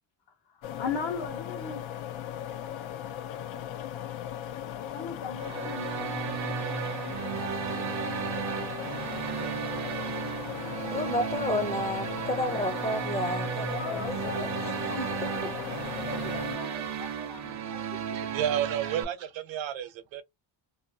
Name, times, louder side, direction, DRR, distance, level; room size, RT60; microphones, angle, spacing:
voice 1, 0.5-1.8 4.8-6.5 13.8-15.7 16.0-18.3, left 5 dB, 65° left, 0.9 m, -39 dB
sound 1, 0.6-16.6, left 11 dB, 90° left, 0.6 m, -38 dB
sound 2, 5.4-19.0, right 7 dB, 40° right, 0.5 m, -34 dB
voice 2, 10.9-15.5, left 1 dB, 15° left, 0.5 m, -32 dB
voice 3, 18.1-20.2, right 10 dB, 75° right, 0.7 m, -31 dB
2.6 x 2.2 x 2.7 m
cardioid pair, 120°, 46 cm